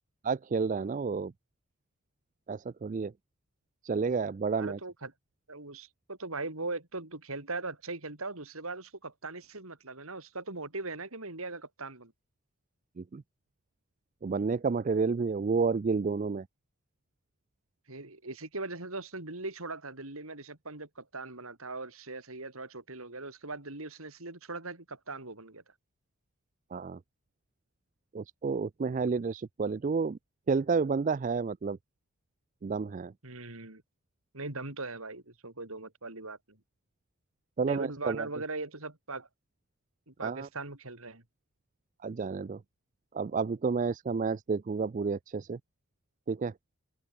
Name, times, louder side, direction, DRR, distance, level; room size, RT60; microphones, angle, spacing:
voice 1, 0.2-1.3 2.5-3.1 3.8-4.8 13.0-13.2 14.2-16.4 26.7-27.0 28.1-30.2 30.5-31.8 32.6-33.1 37.6-38.3 40.2-40.5 42.0-42.6 43.1-45.6 46.3-46.5, right 4 dB, 35° right, 0.3 m, -30 dB
voice 2, 4.5-5.1 5.5-12.1 17.9-25.6 33.2-33.8 34.3-36.6 37.6-39.3 40.1-41.2, right 3 dB, 70° right, 3.7 m, -40 dB
open air
head